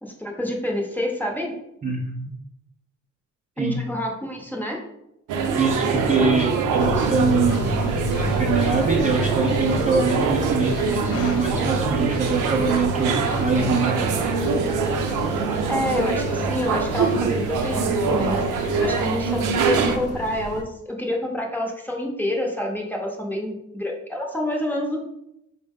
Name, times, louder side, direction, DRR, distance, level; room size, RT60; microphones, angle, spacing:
voice 1, 0.0-1.5 3.6-4.8 15.7-18.4 18.7-25.0, left 1 dB, 5° left, 0 dB, 0.7 m, -27 dB
voice 2, 1.8-2.3 3.6-3.8 5.6-7.7 8.3-14.0, right 4 dB, 25° right, -1 dB, 0.5 m, -23 dB
sound 1, 5.3-20.0, right 5 dB, 90° right, 0.5 m, -24 dB
sound 2, 6.8-20.6, left 1 dB, 55° left, 0.5 m, -31 dB
4.3 x 2.1 x 3.6 m, 0.84 s
cardioid pair, 90°, 30 cm